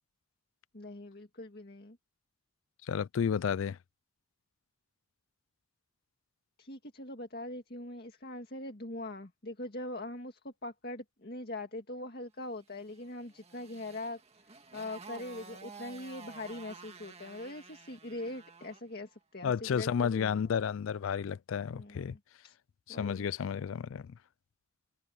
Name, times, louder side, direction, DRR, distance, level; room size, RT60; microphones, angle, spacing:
voice 1, 0.7-2.0 6.6-14.2 14.7-20.5 21.7-22.6 22.9-23.3, left 1 dB, 50° left, 2.0 m, -42 dB
voice 2, 2.9-3.8 19.4-22.2 22.9-24.1, left 7 dB, 75° left, 0.4 m, -32 dB
Motorcycle, 12.9-18.9, right 4 dB, 30° right, 2.1 m, -51 dB
head